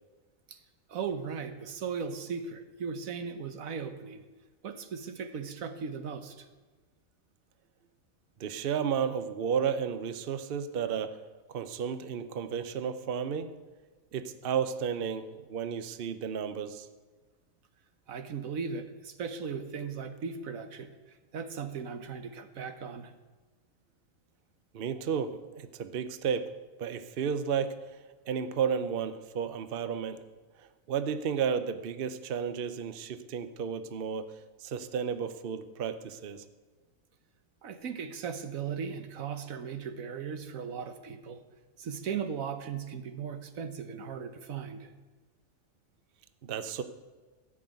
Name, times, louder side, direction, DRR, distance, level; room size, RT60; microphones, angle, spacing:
voice 1, 0.9-4.2 4.6-6.5 18.1-23.1 37.6-41.4 41.8-44.9, right 6 dB, 85° right, 9 dB, 1.4 m, -37 dB
voice 2, 8.4-11.2 11.5-13.5 14.1-16.9 24.7-26.5 26.8-27.7 28.3-30.2 30.9-34.3 34.6-36.4 46.4-46.8, right 7 dB, 50° right, 10 dB, 0.9 m, -32 dB
14.5 x 6.3 x 9.1 m, 1.3 s
omnidirectional pair, 1.4 m